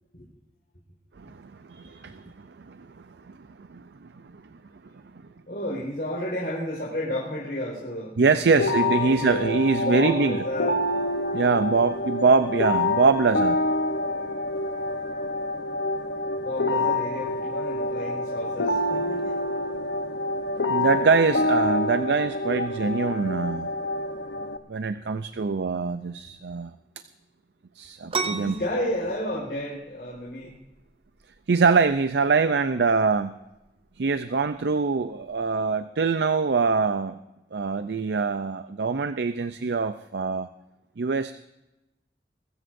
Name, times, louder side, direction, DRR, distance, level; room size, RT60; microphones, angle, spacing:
voice 1, 1.2-4.4 8.2-10.4 11.3-13.6 20.7-23.7 24.7-26.7 27.8-28.6 31.5-33.3 34.0-37.2 37.5-40.5 41.0-41.3, right 4 dB, 70° right, 11 dB, 0.5 m, -24 dB
voice 2, 5.5-10.8 16.4-19.3 28.2-30.5, left 1 dB, 55° left, -7 dB, 4.8 m, -32 dB
sound 1, 8.6-24.6, left 2 dB, 70° left, 0.9 m, -27 dB
sound 2, 28.1-35.5, right 4 dB, 30° right, 0.6 m, -38 dB
23.0 x 14.0 x 2.6 m, 0.95 s
head